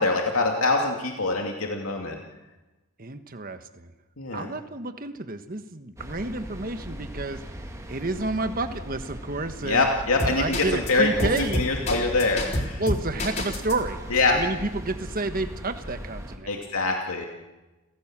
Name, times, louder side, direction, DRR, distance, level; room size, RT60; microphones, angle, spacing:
voice 1, 0.0-2.2 4.2-4.5 9.6-12.8 14.1-14.4 16.5-17.3, left 3 dB, 80° left, 1 dB, 2.6 m, -24 dB
voice 2, 3.0-3.9 4.3-7.4 7.9-9.9 10.4-11.6 12.8-14.0 14.2-16.5, right 2 dB, 40° right, 8 dB, 1.3 m, -30 dB
sound 1, 6.0-16.4, equal, 15° right, 2.2 m, -39 dB
sound 2, 10.2-10.9 11.2-13.7, left 1 dB, 30° left, 3.7 m, -27 dB
29.5 x 17.5 x 7.5 m, 1.1 s
head